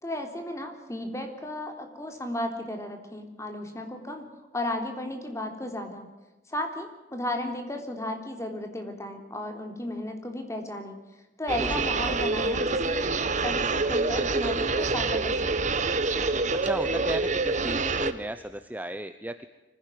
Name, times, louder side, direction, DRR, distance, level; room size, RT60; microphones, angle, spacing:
voice 1, 0.0-4.3 4.5-6.1 6.5-11.0 11.4-13.1 13.4-15.7, left 1 dB, 15° left, 5 dB, 3.5 m, -34 dB
sound 1, 11.5-18.1, right 3 dB, 45° right, 1.4 m, -26 dB
voice 2, 11.6-12.1 16.6-19.5, right 1 dB, 10° right, 10 dB, 0.8 m, -35 dB
24.5 x 16.0 x 9.4 m, 1.1 s
head